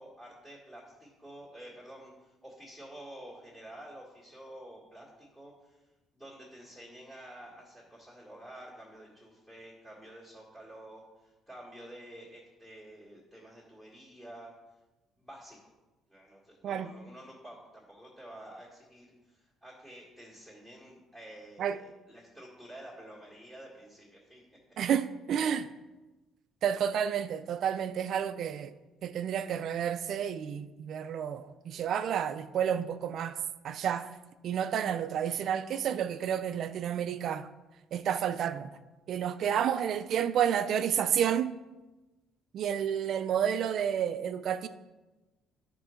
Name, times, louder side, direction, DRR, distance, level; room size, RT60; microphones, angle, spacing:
voice 1, 0.0-5.9 6.1-14.6 15.2-15.7 16.1-24.4, right 1 dB, 10° left, 2.0 m, -50 dB
voice 2, 24.8-25.7 26.6-28.7 29.0-33.4 33.6-34.1 34.4-37.5 37.9-38.7 39.1-41.5 42.5-44.7, right 8 dB, 50° right, 0.4 m, -30 dB
11.0 x 3.8 x 5.7 m
cardioid pair, 155°, 0 cm